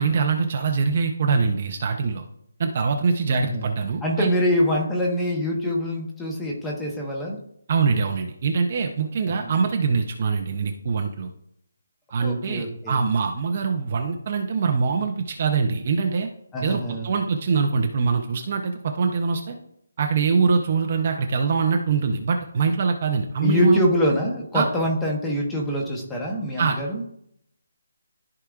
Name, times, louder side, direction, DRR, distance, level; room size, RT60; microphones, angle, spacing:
voice 1, 0.0-2.2 2.6-4.3 7.7-11.3 12.1-16.3 16.6-19.5 20.0-23.8 24.5-24.7 26.6-26.8, right 5 dB, 25° right, 4 dB, 0.5 m, -23 dB
voice 2, 3.3-3.8 4.0-7.4 9.4-9.5 12.2-13.0 16.5-17.1 23.4-27.0, equal, 5° left, -1 dB, 0.8 m, -24 dB
13.5 x 4.8 x 2.4 m, 0.71 s
hypercardioid pair, 180°, 0 cm